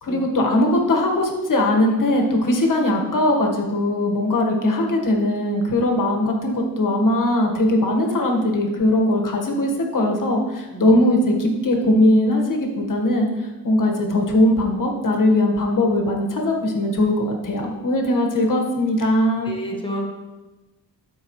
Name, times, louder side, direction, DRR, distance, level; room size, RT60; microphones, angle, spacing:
voice 1, 0.0-13.3 13.6-19.5, left 1 dB, 55° left, 1 dB, 1.6 m, -20 dB
voice 2, 19.4-20.1, right 1 dB, 15° left, -1 dB, 1.6 m, -30 dB
12.5 x 4.8 x 3.2 m, 1.1 s
cardioid pair, 100°, 39 cm